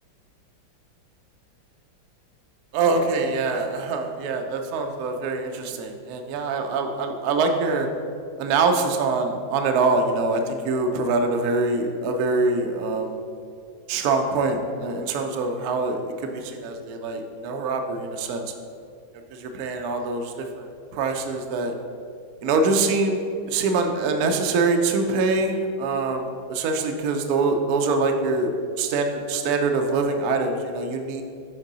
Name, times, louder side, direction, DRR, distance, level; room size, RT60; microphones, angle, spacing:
voice 1, 2.7-7.9 8.4-13.2 13.9-18.4 19.3-21.7 22.4-28.5 28.8-31.2, right 3 dB, 65° right, 4 dB, 1.0 m, -24 dB
6.5 x 3.7 x 6.0 m, 2.4 s
omnidirectional pair, 2.0 m